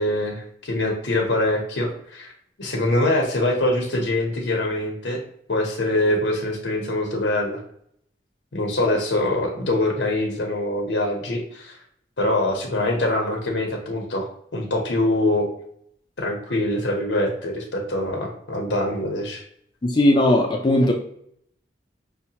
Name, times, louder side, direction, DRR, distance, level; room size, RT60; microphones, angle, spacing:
voice 1, 0.0-2.3 2.6-5.2 5.5-7.6 8.5-11.8 12.2-15.5 16.2-19.4, left 1 dB, 85° left, 0 dB, 0.8 m, -24 dB
voice 2, 19.8-20.9, left 1 dB, 25° left, 1 dB, 0.4 m, -18 dB
5.6 x 2.1 x 2.8 m, 0.68 s
head